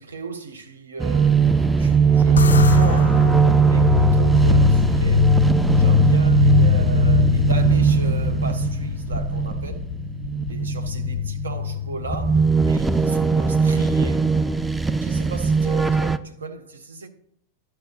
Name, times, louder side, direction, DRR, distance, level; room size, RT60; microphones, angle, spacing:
voice 1, 0.0-5.4 5.7-9.9 10.5-14.3 15.0-17.1, right 4 dB, 70° right, 0.8 m, -36 dB
sound 1, 1.0-16.2, right 6 dB, 5° right, 0.3 m, -20 dB
sound 2, 2.4-13.0, left 8 dB, 70° left, 0.3 m, -21 dB
11.5 x 5.6 x 2.7 m
figure-of-eight pair, 90°, 0 cm